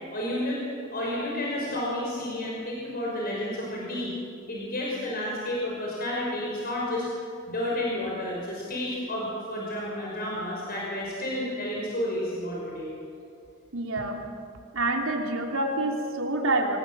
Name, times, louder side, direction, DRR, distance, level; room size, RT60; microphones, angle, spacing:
voice 1, 0.1-0.6 0.9-4.1 4.5-7.0 7.5-12.9, left 1 dB, 50° left, -4 dB, 5.7 m, -31 dB
voice 2, 13.7-14.2 14.7-16.8, right 2 dB, 85° right, 1 dB, 3.4 m, -27 dB
26.0 x 20.5 x 7.7 m, 2.4 s
head